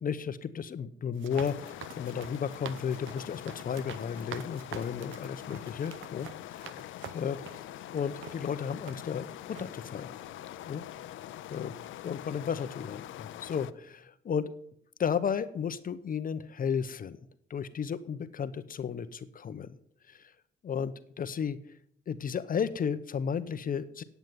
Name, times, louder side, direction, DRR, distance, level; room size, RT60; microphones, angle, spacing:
voice 1, 0.0-6.6 7.1-7.6 7.9-10.1 10.7-10.8 11.5-11.7 12.0-14.5 15.0-17.2 17.5-19.8 20.1-20.3 20.6-21.6 22.1-24.0, left 7 dB, 45° left, 13 dB, 0.7 m, -33 dB
sound 1, 1.1-7.7 8.2-8.4 8.9-9.3 9.6-9.7, right 9 dB, 75° right, 0.9 m, -47 dB
sound 2, 1.3-13.7, left 13 dB, 75° left, 0.6 m, -44 dB
sound 3, 6.6-11.6, right 7 dB, 15° left, 1.9 m, -64 dB
9.4 x 8.1 x 9.1 m, 0.70 s
cardioid pair, 90°, 20 cm